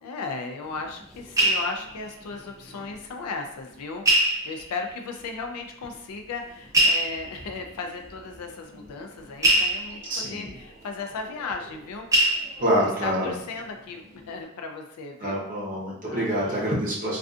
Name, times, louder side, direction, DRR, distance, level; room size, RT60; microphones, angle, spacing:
voice 1, 0.0-12.1 12.6-15.4 16.1-16.7, left 4 dB, 85° left, 4 dB, 0.4 m, -36 dB
sound 1, 0.7-3.0 3.3-3.4 4.1-5.0 5.8-5.9 6.7-11.8 12.1-13.0 13.5-13.8 14.1-14.2, right 1 dB, 15° right, 0.4 m, -25 dB
voice 2, 10.1-10.5 12.6-13.3 15.2-17.2, equal, 35° right, -5 dB, 0.7 m, -26 dB
2.5 x 2.4 x 2.4 m, 0.73 s
head